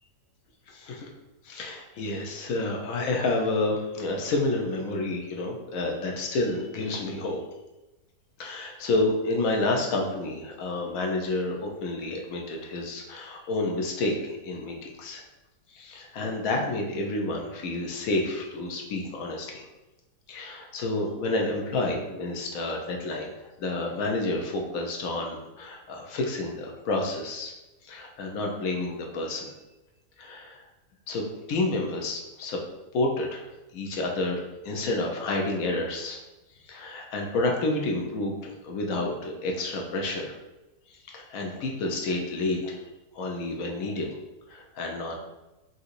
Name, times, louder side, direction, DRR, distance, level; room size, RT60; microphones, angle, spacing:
voice 1, 0.7-1.1 1.4-7.4 8.4-15.2 15.7-19.7 20.3-23.3 23.6-27.5 27.8-29.5 30.2-30.6 31.1-32.6 32.9-33.5 33.7-36.2 36.6-40.3 41.1-42.8 43.1-44.1 44.5-45.2, left 2 dB, 70° left, 1 dB, 0.9 m, -29 dB
3.8 x 2.7 x 2.5 m, 1.0 s
omnidirectional pair, 1.7 m